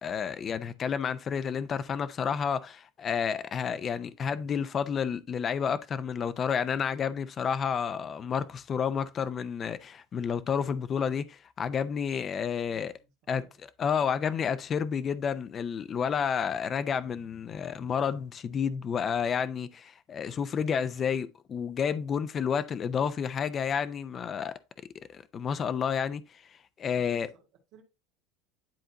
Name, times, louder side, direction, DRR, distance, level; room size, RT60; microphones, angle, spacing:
voice 1, 0.0-12.9 13.3-13.4 13.8-24.6 25.1-26.4 26.8-27.3, left 7 dB, 20° left, 0.4 m, -30 dB
voice 2, 12.2-13.6 20.5-20.9 26.9-27.5 27.7-27.8, right 4 dB, 40° right, 2.1 m, -59 dB
10.0 x 3.9 x 2.8 m
cardioid pair, 180°, 0 cm